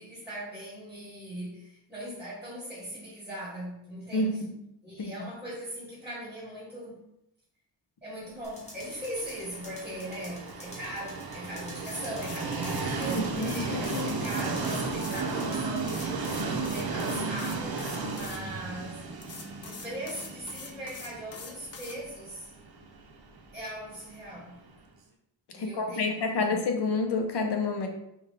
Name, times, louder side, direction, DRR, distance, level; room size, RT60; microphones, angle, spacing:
voice 1, 0.0-4.5 4.8-7.0 8.0-16.2 16.7-17.8 18.1-19.0 19.6-22.5 23.5-24.6 25.5-26.4, right 1 dB, 5° right, -8 dB, 1.2 m, -39 dB
voice 2, 4.1-4.5 5.0-5.1 13.3-14.2 25.5-27.9, left 3 dB, 65° left, 3 dB, 0.8 m, -29 dB
sound 1, 8.4-16.1, equal, 15° left, 1.0 m, -50 dB
Train, 8.9-24.7, right 4 dB, 55° right, 0.6 m, -34 dB
sound 2, 11.7-15.3 15.9-18.4 19.2-22.0, left 4 dB, 35° left, 0.4 m, -44 dB
5.3 x 2.4 x 3.3 m, 0.81 s
wide cardioid pair, 170°, 44 cm